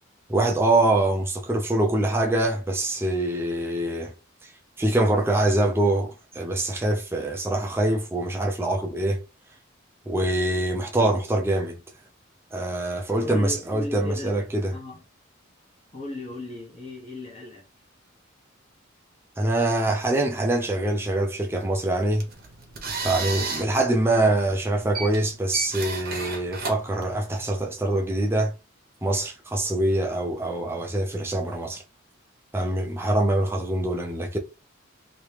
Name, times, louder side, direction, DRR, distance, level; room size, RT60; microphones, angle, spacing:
voice 1, 0.3-4.1 4.8-9.2 10.1-11.8 12.5-14.7 19.4-22.3 23.0-28.5 29.0-31.8 32.5-34.4, right 1 dB, 10° right, 0.5 m, -24 dB
voice 2, 13.2-15.0 15.9-17.9, left 1 dB, 30° left, 1.0 m, -36 dB
sound 1, 22.0-27.6, right 4 dB, 50° right, 0.9 m, -33 dB
3.0 x 2.9 x 3.3 m
head